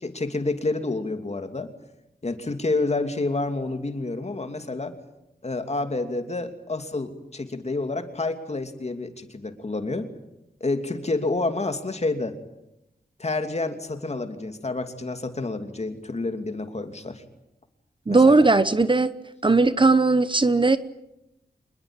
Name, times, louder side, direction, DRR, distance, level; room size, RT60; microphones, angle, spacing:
voice 1, 0.0-1.7 2.2-4.9 5.4-10.1 10.6-12.3 13.2-17.2 18.1-18.4, left 2 dB, 40° left, 7 dB, 2.8 m, -29 dB
voice 2, 18.1-19.1 19.4-20.8, right 3 dB, 30° right, 13 dB, 1.0 m, -18 dB
27.0 x 21.0 x 9.0 m, 0.88 s
wide cardioid pair, 105°, 17 cm